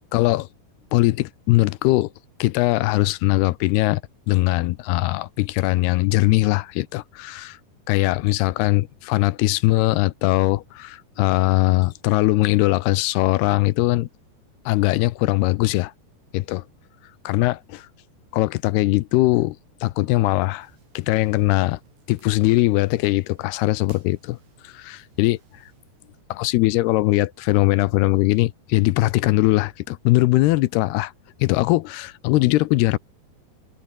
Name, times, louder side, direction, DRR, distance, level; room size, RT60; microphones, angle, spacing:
voice 1, 0.1-0.5 0.9-2.1 2.4-4.0 4.3-7.6 7.9-14.1 14.7-15.9 16.3-16.6 17.2-17.9 18.3-19.6 19.8-20.7 21.0-21.8 22.1-24.4 24.6-25.4 26.3-31.1 31.4-33.0, left 19 dB, 80° left, 2.6 m, -20 dB
sound 1, 20.6-26.2, right 5 dB, 85° right, 8.7 m, -59 dB
omnidirectional pair, 4.8 m